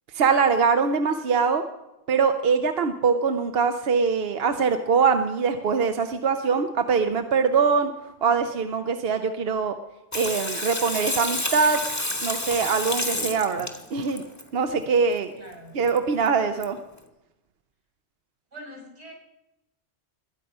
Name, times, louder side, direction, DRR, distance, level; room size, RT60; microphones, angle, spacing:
voice 1, 0.1-1.6 2.1-7.9 8.2-9.7 10.1-11.8 12.2-14.2 14.5-15.3 15.7-16.8, right 5 dB, 60° right, 7 dB, 0.9 m, -23 dB
Water tap faucet / Sink (filling or washing), 10.1-14.4 15.9-16.0 16.3-16.4 16.6-16.7, left 1 dB, 15° left, 1.2 m, -29 dB
voice 2, 15.4-15.7 18.5-19.1, right 1 dB, 85° right, 1 dB, 5.7 m, -43 dB
21.0 x 9.1 x 5.4 m, 0.96 s
omnidirectional pair, 1.2 m